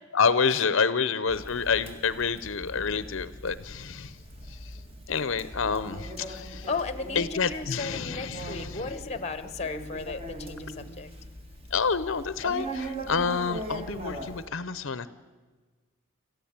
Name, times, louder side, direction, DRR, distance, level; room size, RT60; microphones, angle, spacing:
voice 1, 0.1-4.2 4.5-4.7 5.1-6.7 7.2-8.8 11.7-15.1, left 5 dB, 65° left, 15 dB, 0.7 m, -28 dB
Conversation, 1.3-14.5, right 1 dB, 25° right, 2.1 m, -40 dB
voice 2, 6.6-11.1, left 4 dB, 30° left, 13 dB, 0.9 m, -35 dB
26.5 x 14.5 x 8.8 m, 1.4 s
head